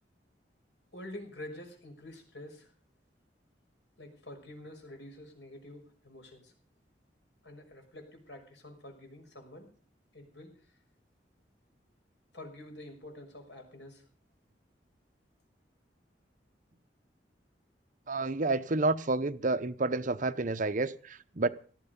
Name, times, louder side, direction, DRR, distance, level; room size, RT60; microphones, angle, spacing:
voice 1, 0.9-2.7 4.0-6.5 7.4-9.7 10.1-10.7 12.3-14.0, left 1 dB, 85° left, 5.9 m, -48 dB
voice 2, 18.1-21.5, right 3 dB, 50° right, 0.9 m, -30 dB
18.0 x 13.5 x 5.3 m
head